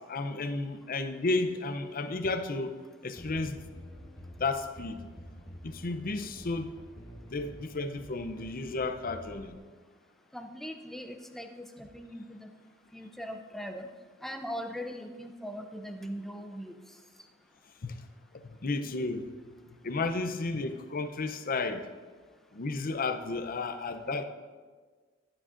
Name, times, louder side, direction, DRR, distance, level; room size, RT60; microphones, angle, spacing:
voice 1, 0.1-2.7 3.0-3.7 4.4-5.0 5.6-6.7 7.3-9.5 17.8-18.0 18.3-19.3 19.8-21.9 22.5-24.3, left 3 dB, 45° left, 8 dB, 0.6 m, -33 dB
sound 1, 3.2-9.6, equal, 20° left, 1.1 m, -48 dB
voice 2, 10.3-12.5 12.9-13.9 14.2-16.7, equal, ahead, 5 dB, 0.5 m, -40 dB
12.5 x 9.6 x 2.5 m, 1.5 s
head